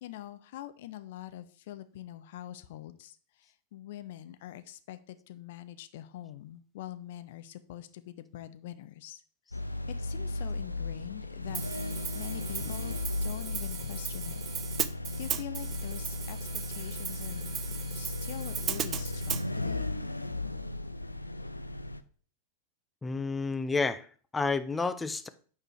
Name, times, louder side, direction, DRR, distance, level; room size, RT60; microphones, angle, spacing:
voice 1, 0.0-9.2 9.9-11.6 12.1-14.4 15.2-19.9, left 13 dB, 55° left, 11 dB, 0.7 m, -44 dB
sound 1, 9.5-22.0, left 2 dB, 85° left, 0.4 m, -36 dB
Hi-hat, 11.5-19.4, right 10 dB, 30° right, 0.5 m, -37 dB
voice 2, 23.0-24.1 24.3-25.3, left 4 dB, 10° left, 11 dB, 0.6 m, -30 dB
8.7 x 4.8 x 4.9 m, 0.43 s
figure-of-eight pair, 90°, 0 cm